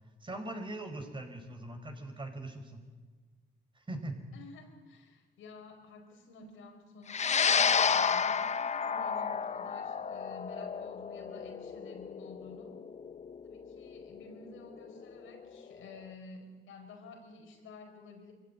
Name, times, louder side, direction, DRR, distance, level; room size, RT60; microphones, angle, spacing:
voice 1, 0.2-2.8 3.7-4.2, right 2 dB, 25° right, 5 dB, 4.8 m, -41 dB
voice 2, 4.3-12.8 13.4-18.3, left 3 dB, 85° left, 3 dB, 5.0 m, -51 dB
sound 1, 7.1-15.6, left 6 dB, 35° left, 0.8 m, -31 dB
24.5 x 16.0 x 9.7 m, 1.4 s
cardioid pair, 90°, 20 cm